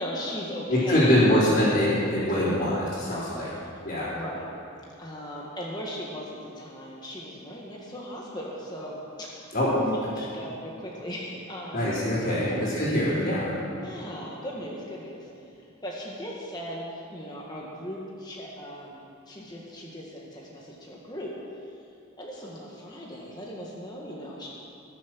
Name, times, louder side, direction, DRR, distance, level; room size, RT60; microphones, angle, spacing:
voice 1, 0.0-1.1 2.3-2.6 3.1-3.6 4.1-4.5 5.0-9.5 9.9-12.0 12.4-12.7 13.7-15.3 15.8-21.3 22.2-24.5, equal, 20° left, -3 dB, 1.5 m, -38 dB
voice 2, 0.7-3.5 3.8-4.1 9.5-10.1 11.7-13.6, left 1 dB, 45° left, -13 dB, 3.9 m, -24 dB
20.5 x 7.4 x 6.2 m, 2.7 s
head